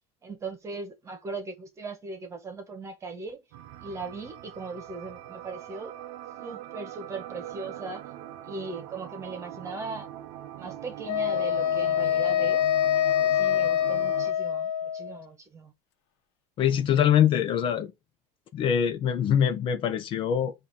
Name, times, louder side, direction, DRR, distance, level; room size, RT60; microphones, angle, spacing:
voice 1, 0.2-3.4 3.8-5.9 6.4-8.1 8.4-10.1 10.5-12.7 13.2-15.7, right 3 dB, 20° right, 1.4 m, -39 dB
sound 1, 3.5-14.3, right 12 dB, 75° right, 0.9 m, -42 dB
Wind instrument woodwind instrument, 11.1-15.2, left 10 dB, 75° left, 1.2 m, -25 dB
voice 2, 16.6-17.9 18.5-20.5, left 9 dB, 35° left, 0.7 m, -23 dB
7.6 x 2.9 x 5.5 m
cardioid pair, 160°, 15 cm